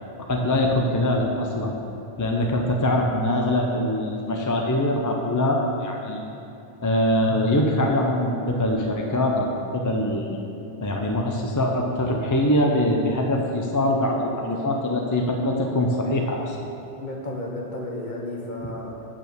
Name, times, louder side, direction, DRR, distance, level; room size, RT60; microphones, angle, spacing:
voice 1, 0.2-1.7 2.2-6.2 6.8-10.4 10.8-16.6, left 1 dB, 25° left, 1 dB, 0.5 m, -23 dB
voice 2, 2.4-2.7 17.0-19.1, left 1 dB, 50° left, -1 dB, 1.2 m, -33 dB
8.9 x 4.2 x 6.8 m, 2.9 s
omnidirectional pair, 1.1 m